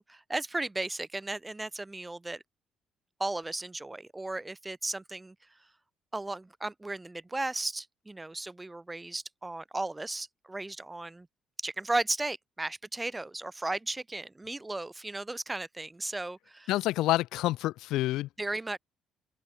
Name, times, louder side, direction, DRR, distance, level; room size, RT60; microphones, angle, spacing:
voice 1, 0.0-2.4 3.2-5.3 6.1-11.3 11.6-16.7 18.4-18.8, right 2 dB, 15° right, 6.6 m, -35 dB
voice 2, 16.7-18.3, left 16 dB, 85° left, 1.4 m, -28 dB
open air
cardioid pair, 100°, 0 cm